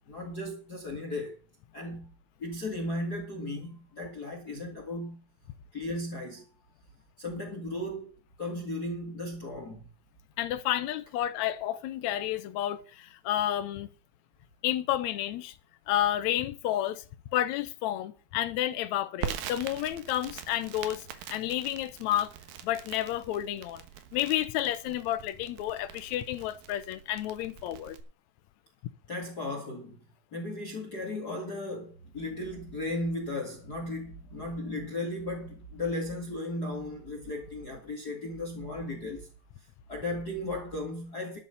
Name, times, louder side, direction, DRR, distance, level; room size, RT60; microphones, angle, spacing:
voice 1, 0.1-1.4 1.7-2.1 2.4-5.2 5.7-6.5 7.2-9.8 29.1-30.0 30.3-39.3 39.9-41.4, left 1 dB, 35° left, 1.9 m, -36 dB
voice 2, 10.4-13.9 14.6-15.5 15.9-17.0 17.3-21.0 21.3-22.3 22.6-23.8 24.1-28.0, left 12 dB, 80° left, 1.6 m, -30 dB
Crackle, 19.2-28.0, right 10 dB, 75° right, 2.8 m, -43 dB
12.0 x 6.9 x 6.9 m
omnidirectional pair, 4.2 m